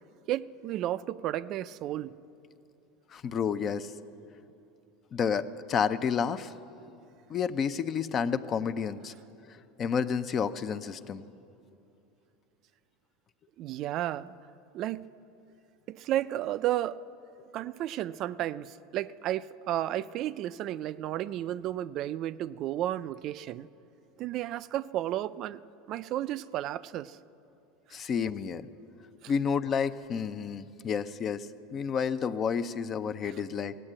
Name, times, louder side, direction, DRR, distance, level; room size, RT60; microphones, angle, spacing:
voice 1, 0.3-2.1 13.6-14.3 14.7-15.1 15.9-17.0 17.5-23.7 24.2-25.6 25.9-27.2 27.9-28.0 29.2-29.3 33.3-33.4, right 13 dB, 45° right, 15 dB, 0.3 m, -33 dB
voice 2, 3.1-3.9 5.1-6.5 7.3-9.1 9.5-11.2 27.9-28.7 29.3-33.8, left 6 dB, 35° left, 12 dB, 0.5 m, -30 dB
16.5 x 8.1 x 8.7 m, 2.8 s
supercardioid pair, 125°, 0 cm